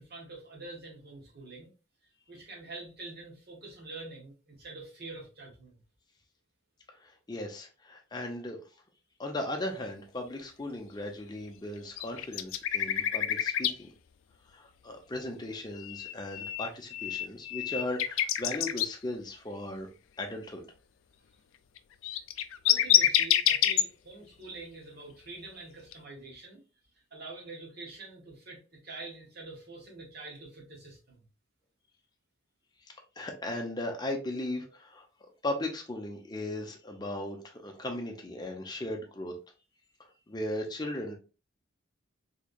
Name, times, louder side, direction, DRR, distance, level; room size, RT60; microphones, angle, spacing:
voice 1, 0.0-1.7 2.3-5.8 22.6-26.6 27.1-31.2, right 3 dB, 50° right, 1.5 m, -45 dB
voice 2, 7.0-8.6 9.2-13.9 14.5-19.9 20.2-20.6 32.8-35.1 35.4-39.3 40.0-41.2, left 1 dB, 20° left, 0.6 m, -37 dB
sound 1, 12.0-13.7 15.8-18.9 21.8-21.9 22.0-23.8 25.9-26.0, left 12 dB, 75° left, 0.3 m, -27 dB
3.6 x 3.3 x 2.4 m
head